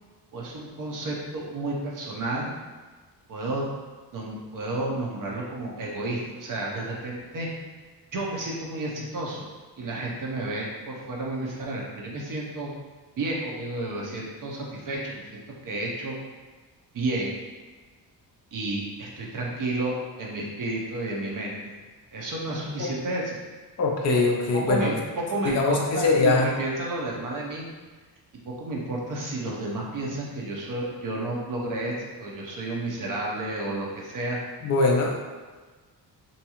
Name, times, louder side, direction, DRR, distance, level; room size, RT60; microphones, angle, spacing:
voice 1, 0.3-2.5 3.3-3.6 4.1-7.5 8.1-9.4 9.8-12.7 13.2-16.1 16.9-17.3 18.5-21.7 22.1-23.4 24.1-24.2 24.5-25.0 25.3-27.6 28.4-34.4, right 2 dB, 50° right, -3 dB, 0.6 m, -31 dB
voice 2, 23.8-24.9 25.4-26.5 34.6-35.2, left 3 dB, 40° left, 0 dB, 0.4 m, -22 dB
2.6 x 2.3 x 2.8 m, 1.4 s
wide cardioid pair, 170°, 42 cm